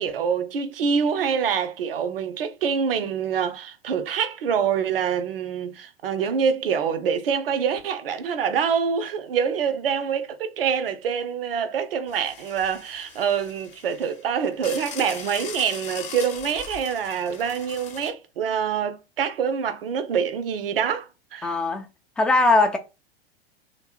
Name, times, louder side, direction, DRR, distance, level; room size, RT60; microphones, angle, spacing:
voice 1, 0.0-21.5, right 7 dB, 65° right, 0.7 m, -25 dB
sound 1, 12.1-18.1, left 7 dB, 20° left, 0.8 m, -40 dB
voice 2, 21.4-21.9 22.2-22.8, left 2 dB, 5° left, 0.4 m, -20 dB
3.2 x 2.9 x 4.5 m
figure-of-eight pair, 95°, 31 cm